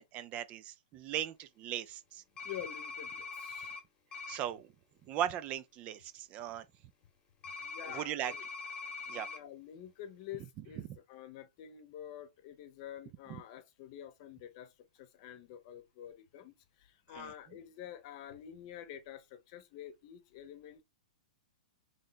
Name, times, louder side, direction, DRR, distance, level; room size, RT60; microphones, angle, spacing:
voice 1, 0.0-2.2 4.3-4.7 5.1-6.7 7.9-8.3 9.1-9.3 13.3-13.4 17.1-17.3, right 11 dB, 30° right, 0.6 m, -38 dB
voice 2, 2.4-3.7 7.6-8.4 9.1-20.8, left 10 dB, 45° left, 1.0 m, -48 dB
sound 1, 2.4-3.8 4.1-4.4 7.4-9.4, left 4 dB, 20° left, 1.3 m, -43 dB
3.9 x 3.3 x 4.0 m
hypercardioid pair, 135°, 4 cm